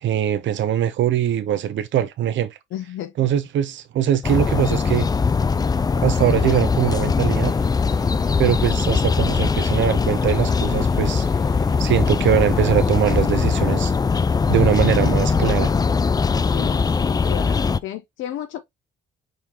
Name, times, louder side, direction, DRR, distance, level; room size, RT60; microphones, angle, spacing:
voice 1, 0.0-2.6 3.2-5.1 6.0-7.5 8.4-11.3 11.8-13.9 14.5-15.7, right 10 dB, 70° right, 0.8 m, -21 dB
voice 2, 2.7-3.3 16.4-18.6, left 11 dB, 80° left, 0.6 m, -33 dB
sound 1, 4.2-17.8, left 5 dB, 20° left, 0.3 m, -21 dB
sound 2, 7.3-13.3, left 1 dB, ahead, 0.9 m, -41 dB
4.9 x 3.9 x 2.8 m
cardioid pair, 90°, 20 cm